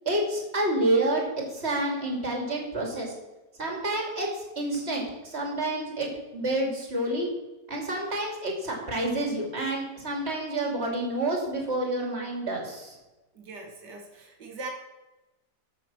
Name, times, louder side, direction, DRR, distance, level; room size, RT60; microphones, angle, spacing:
voice 1, 0.0-3.1 3.6-7.3 7.7-12.9, right 1 dB, 35° right, 0 dB, 3.0 m, -29 dB
voice 2, 13.3-14.7, right 3 dB, 70° right, 1 dB, 2.6 m, -41 dB
14.0 x 6.5 x 6.2 m, 1.1 s
omnidirectional pair, 1.9 m